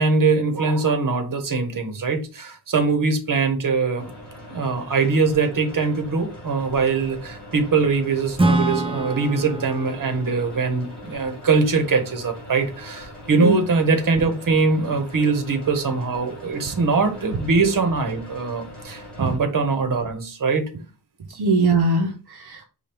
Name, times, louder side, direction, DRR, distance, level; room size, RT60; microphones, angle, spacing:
voice 1, 0.0-4.1 4.5-20.6, right 4 dB, 55° right, 1.1 m, -22 dB
sound 1, 4.0-19.4, left 1 dB, ahead, 2.4 m, -41 dB
Acoustic guitar / Strum, 8.4-12.0, right 2 dB, 15° right, 0.4 m, -26 dB
voice 2, 21.3-22.6, right 3 dB, 70° right, 0.7 m, -21 dB
5.1 x 2.4 x 4.4 m
wide cardioid pair, 110°, 39 cm